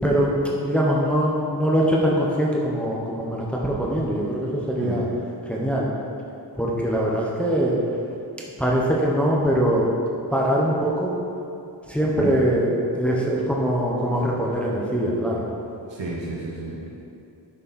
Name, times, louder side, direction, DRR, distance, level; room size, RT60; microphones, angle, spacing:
voice 1, 0.0-5.0 5.5-5.9 6.6-7.8 8.6-9.9 10.3-11.1 11.9-15.4, equal, 5° left, -4 dB, 1.0 m, -22 dB
voice 2, 15.9-16.9, right 2 dB, 85° right, -5 dB, 1.4 m, -31 dB
11.0 x 6.5 x 4.2 m, 2.6 s
wide cardioid pair, 165°, 43 cm